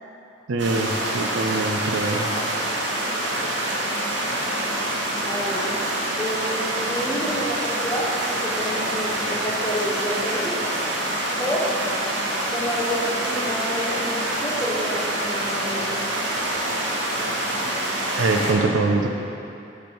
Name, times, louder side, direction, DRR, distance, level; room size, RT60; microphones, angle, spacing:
voice 1, 0.5-2.3 18.2-19.1, right 3 dB, 85° right, 3 dB, 0.5 m, -23 dB
sound 1, 0.6-18.5, right 1 dB, 65° right, 1.0 m, -26 dB
voice 2, 5.2-5.7 6.2-10.6 11.4-11.8 12.5-15.9, equal, 15° left, -8 dB, 0.6 m, -29 dB
6.0 x 4.5 x 5.1 m, 2.6 s
head